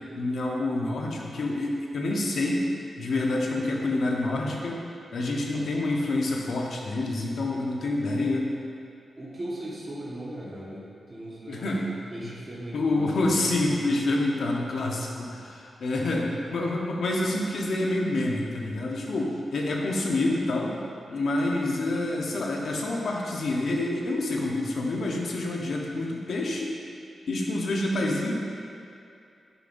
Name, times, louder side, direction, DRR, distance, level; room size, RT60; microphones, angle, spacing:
voice 1, 0.1-2.6 3.0-4.8 5.1-8.5 11.5-11.8 12.7-20.7 21.1-26.7 27.3-28.3, left 2 dB, 75° left, -1 dB, 0.9 m, -27 dB
voice 2, 5.5-6.2 7.8-7.9 9.2-11.7 12.1-13.2, right 1 dB, 30° right, -8 dB, 1.3 m, -39 dB
8.8 x 5.1 x 2.6 m, 2.5 s
cardioid pair, 95°, 0 cm